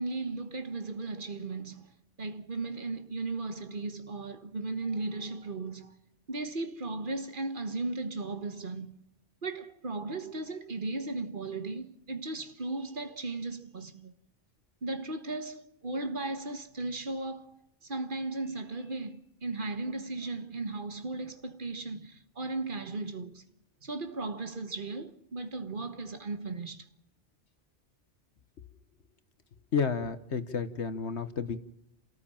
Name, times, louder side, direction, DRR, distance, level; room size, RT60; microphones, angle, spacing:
voice 1, 0.0-1.9 2.2-6.0 6.3-9.0 9.4-14.1 14.8-23.4 23.8-26.9, right 3 dB, 45° right, 1.8 m, -36 dB
voice 2, 29.7-31.6, left 6 dB, 70° left, 1.5 m, -31 dB
30.0 x 14.0 x 7.2 m
omnidirectional pair, 1.2 m